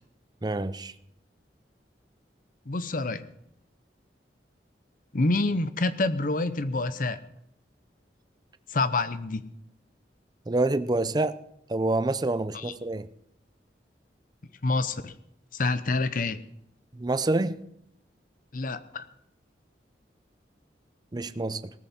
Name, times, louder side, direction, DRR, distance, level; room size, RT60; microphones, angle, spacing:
voice 1, 0.4-0.9 10.5-11.4 11.7-13.1 16.9-17.6 21.1-21.7, right 2 dB, 25° right, 0.6 m, -27 dB
voice 2, 2.7-3.2 5.1-7.2 8.7-9.5 12.5-12.7 14.6-15.1 15.5-16.4 18.5-19.1, left 3 dB, 50° left, 0.8 m, -27 dB
18.5 x 14.0 x 4.3 m
head